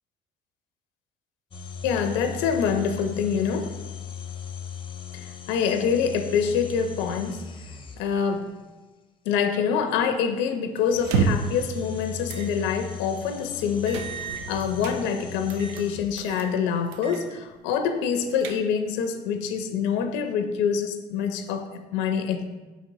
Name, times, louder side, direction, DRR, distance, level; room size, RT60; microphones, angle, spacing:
sound 1, 1.5-8.4 10.8-16.5, left 7 dB, 25° left, 0.5 m, -38 dB
voice 1, 1.8-3.8 5.1-7.5 8.0-8.6 9.3-22.5, left 7 dB, 80° left, 8 dB, 0.4 m, -26 dB
sound 2, 11.0-11.6 12.3-12.5 12.9-13.0 13.9-15.0 15.5-15.9 16.2-16.5 16.9-17.2 17.6-17.7 18.1-18.9, right 5 dB, 85° right, 0.5 m, -29 dB
4.9 x 4.0 x 2.6 m, 1.2 s
supercardioid pair, 75°, 20 cm